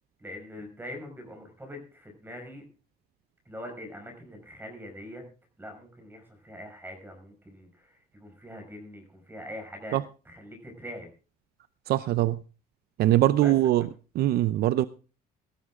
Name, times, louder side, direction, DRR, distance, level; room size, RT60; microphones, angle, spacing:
voice 1, 0.2-2.6 3.5-5.2 5.6-10.0 10.3-11.1 13.4-13.5, equal, 10° right, 3 dB, 5.5 m, -43 dB
voice 2, 11.9-12.4 13.0-13.8 14.1-14.8, right 14 dB, 70° right, 15 dB, 0.6 m, -22 dB
17.0 x 13.0 x 3.6 m, 0.35 s
cardioid pair, 110°, 17 cm